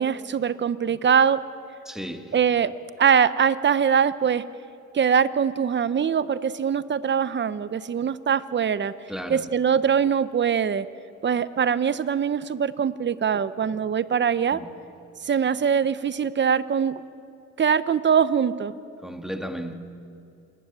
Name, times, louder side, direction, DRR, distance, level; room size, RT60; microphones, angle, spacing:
voice 1, 0.0-1.4 2.3-2.7 3.0-4.4 4.9-8.9 9.3-10.9 11.2-14.6 15.2-17.0 17.6-18.7, right 7 dB, 40° right, 0.9 m, -22 dB
voice 2, 1.9-2.4 9.1-9.5 14.5-14.8 19.0-19.8, equal, ahead, 1.9 m, -34 dB
28.0 x 13.5 x 9.1 m
cardioid pair, 90°, 30 cm